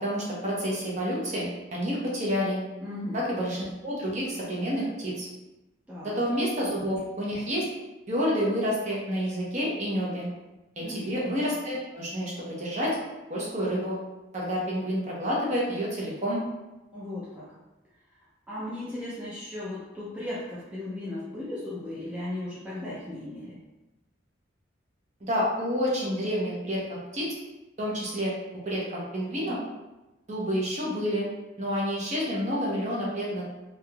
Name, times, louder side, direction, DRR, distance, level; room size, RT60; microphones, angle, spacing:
voice 1, 0.0-2.6 3.1-5.3 6.0-7.7 8.1-10.3 10.8-12.9 13.3-14.0 14.3-16.4 25.2-27.3 27.8-28.3 28.6-29.6 30.3-31.3 31.6-33.4, equal, 35° right, -5 dB, 0.8 m, -29 dB
voice 2, 2.8-3.2 5.9-6.2 10.8-11.2 16.9-17.5 18.5-23.6, left 1 dB, 5° right, -9 dB, 0.5 m, -36 dB
3.4 x 2.8 x 2.3 m, 1.0 s
head